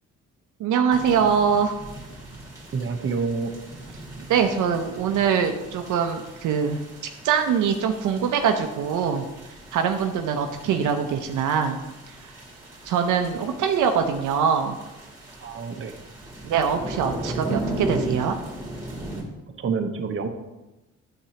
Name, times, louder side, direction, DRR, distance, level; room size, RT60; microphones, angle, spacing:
voice 1, 0.6-1.7 4.3-6.8 7.2-9.2 9.7-11.8 12.8-14.8 16.4-18.4, right 7 dB, 80° right, 5 dB, 0.7 m, -23 dB
sound 1, 0.9-19.2, right 1 dB, 10° right, 2.4 m, -37 dB
voice 2, 2.7-3.5 15.4-16.0 19.6-20.3, right 5 dB, 45° right, 5 dB, 0.9 m, -27 dB
8.9 x 7.7 x 2.9 m, 1.0 s
cardioid pair, 90°, 30 cm